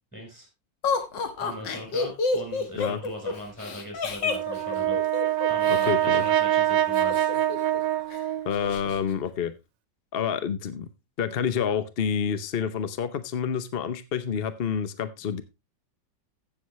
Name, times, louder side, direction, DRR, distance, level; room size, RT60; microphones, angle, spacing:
voice 1, 0.1-0.5 1.4-5.0 5.5-7.3, equal, 5° left, 2 dB, 4.3 m, -39 dB
Laughter, 0.8-5.9 6.9-7.8 8.1-8.2 8.5-9.0, left 4 dB, 75° left, 2.1 m, -29 dB
Brass instrument, 4.3-8.7, right 12 dB, 75° right, 1.4 m, -24 dB
voice 2, 5.8-6.2 8.4-9.5 10.1-10.9 11.2-15.4, left 7 dB, 50° left, 12 dB, 0.7 m, -28 dB
16.0 x 7.1 x 3.1 m, 0.23 s
omnidirectional pair, 2.0 m